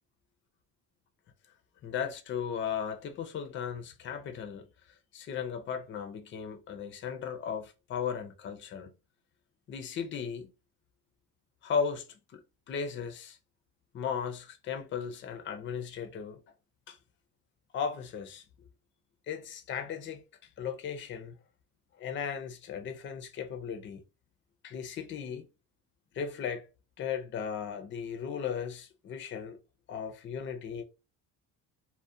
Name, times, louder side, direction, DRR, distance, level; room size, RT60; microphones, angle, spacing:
voice 1, 1.8-4.7 5.1-8.9 9.7-10.5 11.6-12.1 12.3-12.4 12.7-13.4 13.9-16.4 16.9-17.0 17.7-18.4 19.3-20.2 20.6-21.3 22.0-24.0 24.6-25.5 26.1-26.7 27.0-29.6 29.9-30.8, left 7 dB, 35° left, 0.4 m, -36 dB
2.4 x 2.1 x 2.5 m
cardioid pair, 110°, 35 cm